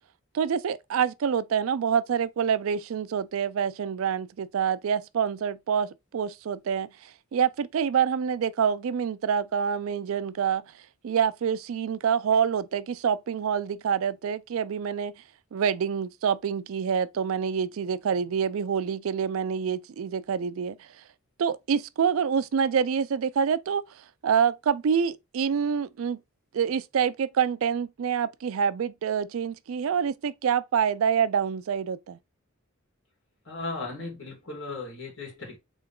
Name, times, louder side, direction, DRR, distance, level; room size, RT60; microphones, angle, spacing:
voice 1, 0.3-10.6 11.0-15.1 15.5-20.9 21.4-23.8 24.2-26.2 26.5-32.2, right 7 dB, 70° right, 0.4 m, -26 dB
voice 2, 33.5-35.6, left 3 dB, 60° left, 2.5 m, -36 dB
3.8 x 3.4 x 3.6 m
head